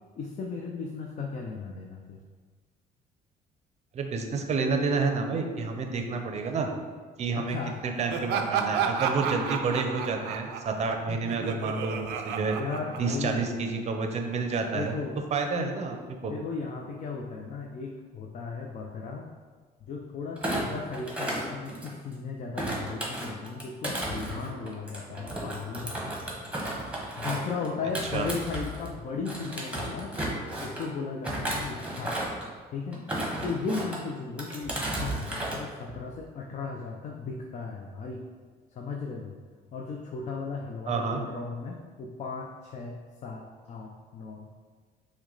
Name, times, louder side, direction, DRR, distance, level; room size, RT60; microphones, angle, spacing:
voice 1, 0.2-2.2 7.3-7.8 12.5-13.4 14.7-15.2 16.2-19.3 19.9-26.3 27.2-30.1 30.6-32.2 32.7-33.1 33.4-38.2 38.7-39.3 39.7-44.5, left 4 dB, 45° left, 1 dB, 0.5 m, -36 dB
voice 2, 3.9-6.7 7.2-7.6 7.8-12.5 13.0-15.0 15.3-16.0 16.2-16.3 28.1-28.3 40.9-41.2, right 4 dB, 40° right, 4 dB, 0.6 m, -29 dB
Laughter, 8.1-13.5, right 7 dB, 90° right, 0.4 m, -32 dB
Thump thud, 20.4-22.1 22.6-28.9 29.2-30.9 31.2-32.5 32.9-34.0 34.4-35.6 35.9-36.2, right 1 dB, 5° right, 1.0 m, -33 dB
5.8 x 2.2 x 3.8 m, 1.5 s
cardioid pair, 110°, 17 cm